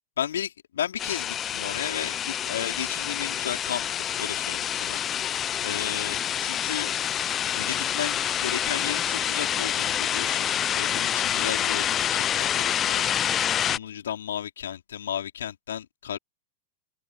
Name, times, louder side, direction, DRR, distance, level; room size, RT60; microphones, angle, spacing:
voice 1, 0.2-6.9 7.5-13.0 13.6-16.2, left 9 dB, 65° left, 4.9 m, -34 dB
sound 1, 1.0-13.8, left 10 dB, 25° left, 0.9 m, -27 dB
open air
figure-of-eight pair, 90°, 0 cm